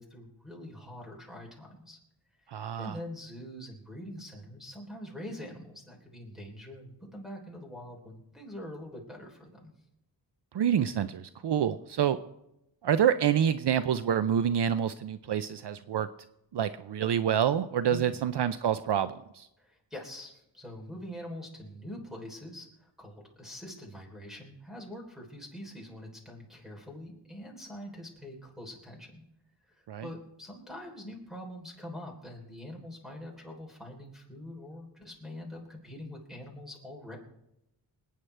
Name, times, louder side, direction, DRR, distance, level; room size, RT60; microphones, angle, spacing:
voice 1, 0.0-2.0 2.4-9.7 17.9-18.2 19.6-29.2 29.7-37.2, left 1 dB, ahead, 0 dB, 3.5 m, -44 dB
voice 2, 2.5-2.9 10.5-12.2 12.8-16.1 16.5-19.5 29.9-30.0, right 9 dB, 65° right, 12 dB, 0.6 m, -27 dB
27.0 x 9.2 x 3.3 m, 0.84 s
wide cardioid pair, 170°, 45 cm